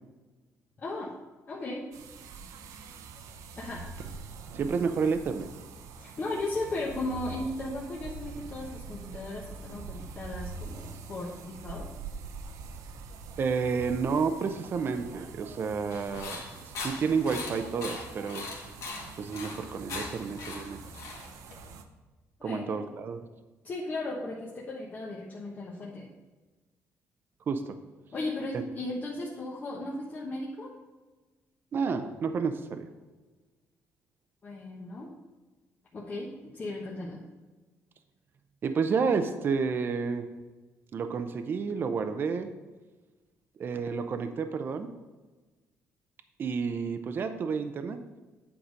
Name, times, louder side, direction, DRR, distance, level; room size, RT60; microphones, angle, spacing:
voice 1, 0.8-1.1 1.5-1.8 3.6-3.8 6.0-11.8 22.4-22.8 23.6-26.1 28.1-30.7 34.4-35.1 35.9-36.3 36.5-37.2, left 2 dB, 30° left, -4 dB, 1.0 m, -36 dB
sound 1, 1.9-21.8, right 4 dB, 90° right, 0.7 m, -44 dB
voice 2, 4.5-5.5 13.4-18.4 19.2-20.8 22.4-23.2 27.5-27.8 31.7-32.9 38.6-40.3 40.9-42.5 43.6-44.9 46.4-48.0, right 5 dB, 40° right, 8 dB, 0.5 m, -30 dB
sound 2, 15.9-21.7, left 3 dB, 75° left, 2.1 m, -40 dB
8.8 x 4.8 x 5.2 m, 1.2 s
cardioid pair, 145°, 5 cm